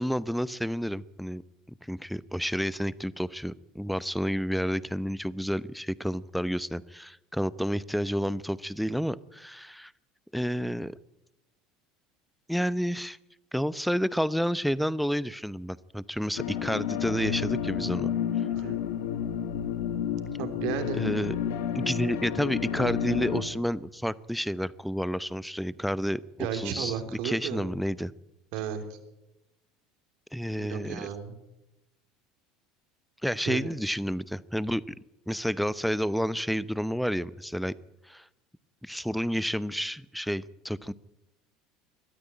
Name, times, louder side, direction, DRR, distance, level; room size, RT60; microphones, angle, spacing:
voice 1, 0.0-1.4 1.8-9.9 10.3-10.9 12.5-13.2 13.5-18.1 20.9-21.4 21.7-27.0 27.2-28.1 30.3-31.1 33.2-34.9 35.3-37.7 38.1-38.3 38.8-40.9, equal, ahead, 19 dB, 0.8 m, -30 dB
sound 1, 16.4-23.4, left 8 dB, 70° left, 2.2 m, -31 dB
voice 2, 18.5-18.8 20.4-21.0 26.4-27.7 28.5-29.0 30.5-31.4 33.5-33.7, right 8 dB, 60° right, 7 dB, 3.3 m, -34 dB
21.5 x 14.0 x 10.0 m, 0.91 s
figure-of-eight pair, 70°, 0 cm